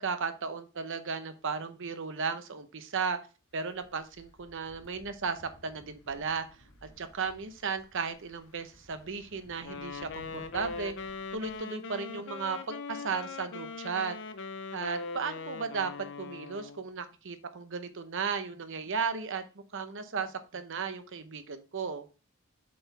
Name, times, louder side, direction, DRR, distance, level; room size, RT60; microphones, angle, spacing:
voice 1, 0.0-3.2 3.5-6.5 6.8-10.9 11.3-14.2 14.7-19.4 19.7-22.1, right 5 dB, 60° right, 10 dB, 0.8 m, -35 dB
sound 1, 3.5-11.6, equal, 75° left, 1.6 m, -58 dB
Wind instrument woodwind instrument, 9.6-16.8, left 4 dB, 55° left, 0.6 m, -41 dB
7.4 x 4.6 x 3.3 m, 0.33 s
head